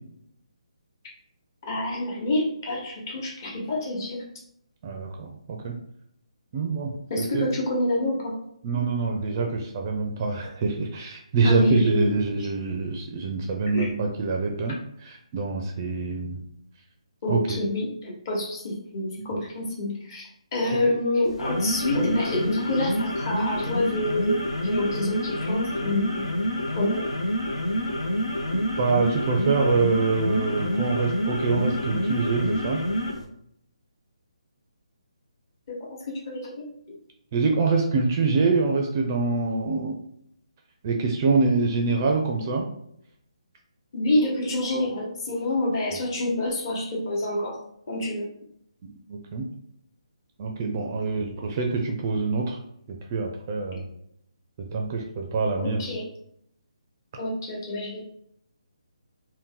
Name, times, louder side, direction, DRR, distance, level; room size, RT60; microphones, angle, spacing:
voice 1, 1.6-4.3 7.1-8.3 9.4-9.5 11.4-12.4 13.7-13.9 17.2-26.3 26.8-27.0 35.7-36.7 43.9-47.6 47.9-48.3 55.6-56.1 57.2-58.1, left 1 dB, 35° left, -2 dB, 1.0 m, -27 dB
voice 2, 4.8-5.8 6.5-6.9 7.3-7.5 8.6-14.8 15.0-16.4 17.3-17.6 20.7-20.8 28.8-32.8 37.3-40.0 40.8-42.7 45.9-46.0 48.8-49.5 50.4-52.6 52.9-53.9 54.6-55.9, right 4 dB, 30° right, 2 dB, 0.4 m, -25 dB
sound 1, 21.3-33.3, equal, 90° left, 0.7 m, -27 dB
2.8 x 2.2 x 3.6 m, 0.72 s
hypercardioid pair, 160°, 3 cm